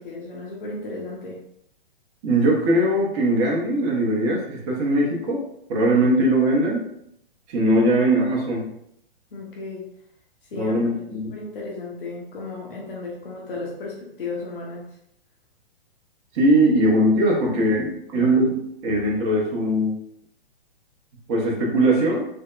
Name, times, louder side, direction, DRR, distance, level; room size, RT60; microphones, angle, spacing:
voice 1, 0.0-1.4 9.3-9.8 10.5-14.8 18.1-18.3, left 3 dB, 65° left, -2 dB, 0.7 m, -34 dB
voice 2, 2.2-5.4 5.7-6.9 7.5-8.7 10.5-11.3 16.3-19.9 21.3-22.3, right 1 dB, 30° right, -2 dB, 0.7 m, -20 dB
3.4 x 2.0 x 2.4 m, 0.74 s
figure-of-eight pair, 115°, 30 cm